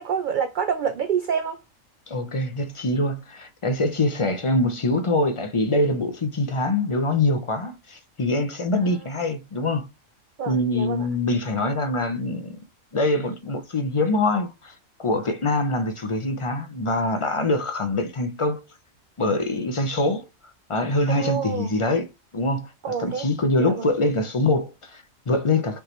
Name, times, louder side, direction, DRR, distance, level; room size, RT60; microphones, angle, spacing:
voice 1, 0.0-1.6 10.4-11.1 21.1-21.8 22.8-23.3 23.6-23.8, right 7 dB, 65° right, 0.4 m, -27 dB
voice 2, 2.1-9.9 10.5-12.6 12.9-18.6 19.2-20.3 20.7-25.8, left 2 dB, 50° left, 0.4 m, -24 dB
5.3 x 3.1 x 2.9 m
omnidirectional pair, 1.4 m